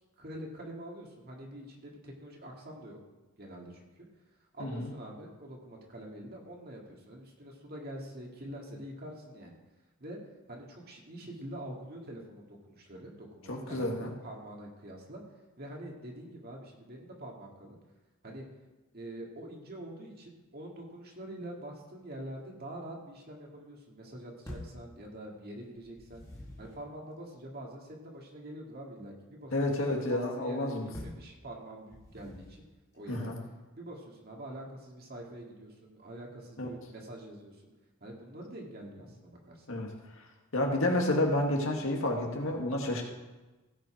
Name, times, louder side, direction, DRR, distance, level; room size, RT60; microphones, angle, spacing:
voice 1, 0.2-3.0 3.4-4.1 4.5-9.6 10.0-10.2 10.5-15.2 15.6-17.8 18.2-18.5 18.9-26.2 26.6-32.6 32.9-33.3 33.7-37.7 38.0-39.7, right 1 dB, 50° right, -1 dB, 2.2 m, -45 dB
voice 2, 4.6-4.9 13.5-14.1 29.5-30.9 33.1-33.4 36.6-36.7 39.7-39.9 40.5-43.0, left 1 dB, 75° left, 1 dB, 1.9 m, -30 dB
sound 1, 24.4-24.8 25.7-26.8 30.9-31.3 31.9-32.6, left 1 dB, 15° left, 1.9 m, -45 dB
16.0 x 5.6 x 5.1 m, 1.1 s
head